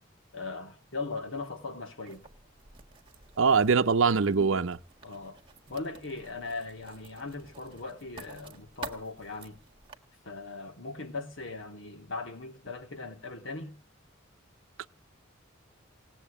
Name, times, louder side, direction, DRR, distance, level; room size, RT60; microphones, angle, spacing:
voice 1, 0.3-2.3 5.0-5.4 5.7-9.6 10.2-13.7, left 3 dB, 65° left, 2.7 m, -39 dB
Writing, 2.1-9.9, right 4 dB, 25° right, 1.6 m, -50 dB
voice 2, 3.4-4.8 14.8-14.9, right 5 dB, 70° right, 0.7 m, -23 dB
19.0 x 8.0 x 8.4 m
head